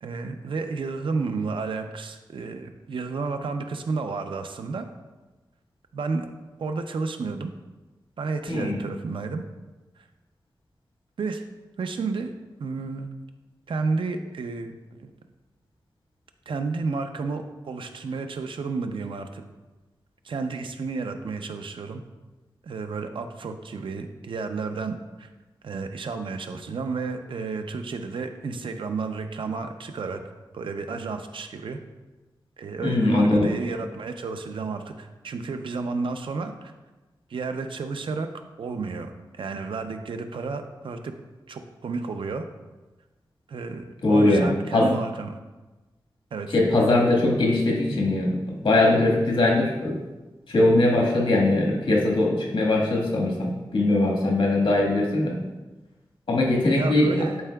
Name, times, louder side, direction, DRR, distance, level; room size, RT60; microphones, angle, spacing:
voice 1, 0.0-4.9 5.9-6.3 6.6-7.5 8.2-9.4 10.0-10.1 11.2-11.4 11.8-12.3 12.6-13.1 13.7-15.1 16.5-19.4 20.2-22.0 22.6-25.3 25.6-30.2 30.5-31.8 32.6-36.7 37.3-38.3 38.6-41.1 41.5-42.5 43.5-45.3 46.3-46.5 56.7-57.4, right 4 dB, 85° right, 7 dB, 0.5 m, -31 dB
voice 2, 8.5-8.8 32.8-33.5 44.0-44.9 46.5-50.0 50.5-55.4 56.3-57.1, left 2 dB, 75° left, -2 dB, 1.5 m, -21 dB
11.0 x 4.6 x 2.3 m, 1.2 s
wide cardioid pair, 110°, 8 cm